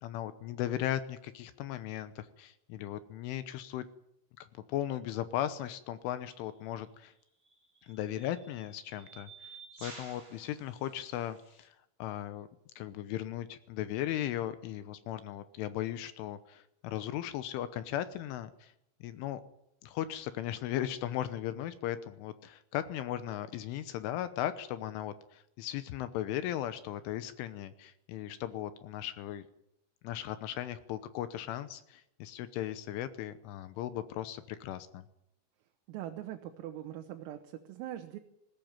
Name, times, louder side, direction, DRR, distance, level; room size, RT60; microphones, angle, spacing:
voice 1, 0.0-3.9 4.4-7.1 7.8-9.3 9.8-11.7 12.0-12.5 12.8-18.7 19.0-19.4 19.8-29.4 30.0-35.0, left 12 dB, 80° left, 12 dB, 3.3 m, -37 dB
sound 1, 6.3-6.5 7.5-11.7, right 3 dB, 10° right, 4.5 m, -52 dB
voice 2, 35.9-38.2, right 12 dB, 90° right, 5 dB, 4.0 m, -42 dB
20.0 x 17.0 x 9.1 m, 0.78 s
omnidirectional pair, 5.9 m